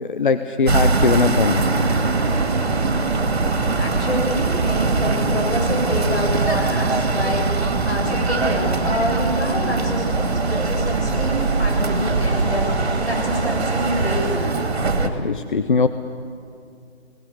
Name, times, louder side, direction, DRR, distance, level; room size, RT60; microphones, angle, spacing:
voice 1, 0.0-1.7 15.0-15.9, left 4 dB, 50° left, 10 dB, 0.8 m, -20 dB
sound 1, 0.7-14.4, right 2 dB, 15° right, 2.6 m, -30 dB
sound 2, 0.7-15.1, right 3 dB, 70° right, 2.3 m, -22 dB
voice 2, 3.7-14.5, left 1 dB, 75° left, 0 dB, 7.2 m, -27 dB
21.0 x 19.0 x 8.2 m, 2.4 s
figure-of-eight pair, 160°, 33 cm